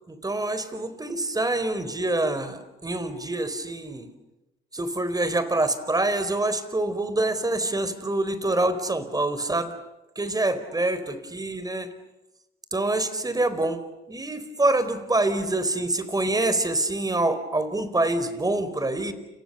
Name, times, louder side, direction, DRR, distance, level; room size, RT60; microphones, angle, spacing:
voice 1, 0.1-4.1 4.7-9.7 10.2-11.9 12.7-13.8 14.1-19.1, right 2 dB, 20° right, 11 dB, 4.5 m, -26 dB
29.5 x 29.5 x 6.9 m, 0.97 s
cardioid pair, 90°, 20 cm